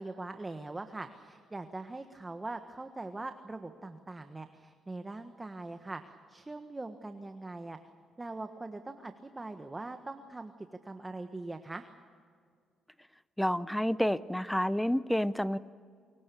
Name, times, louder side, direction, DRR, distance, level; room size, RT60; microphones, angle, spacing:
voice 1, 0.0-7.8 8.2-11.9, right 2 dB, 20° right, 7 dB, 1.4 m, -42 dB
voice 2, 13.4-15.6, equal, 5° left, 16 dB, 0.7 m, -29 dB
29.5 x 23.0 x 7.1 m, 2.1 s
cardioid pair, 90°, 0 cm